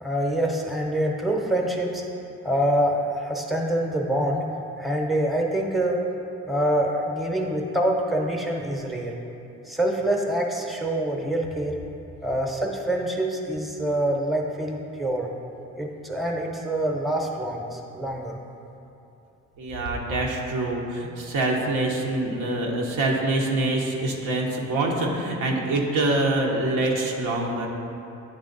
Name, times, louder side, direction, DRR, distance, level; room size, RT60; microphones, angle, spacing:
voice 1, 0.0-2.0 2.4-4.5 4.8-6.0 6.5-9.1 9.7-11.8 12.2-15.3 15.8-18.4, right 1 dB, ahead, 1 dB, 0.7 m, -25 dB
voice 2, 19.6-27.7, right 2 dB, 90° right, -1 dB, 0.9 m, -25 dB
9.3 x 3.4 x 3.9 m, 2.8 s
cardioid pair, 90°, 30 cm